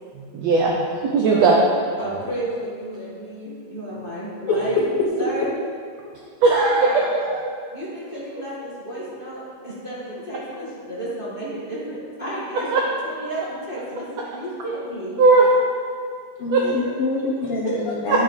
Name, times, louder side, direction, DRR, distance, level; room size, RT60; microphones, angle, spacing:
voice 1, 0.3-0.7 1.1-1.6 6.4-7.4 12.7-12.8 15.2-15.5 16.5-16.6, right 3 dB, 80° right, -2 dB, 1.5 m, -17 dB
voice 2, 2.0-4.8 5.2-5.5 6.8-7.0 7.7-12.7 13.0-15.2 17.6-17.9, right 1 dB, 30° left, -9 dB, 1.0 m, -32 dB
voice 3, 16.4-18.2, left 3 dB, 90° left, -3 dB, 1.3 m, -25 dB
10.0 x 9.7 x 3.2 m, 2.2 s
omnidirectional pair, 4.0 m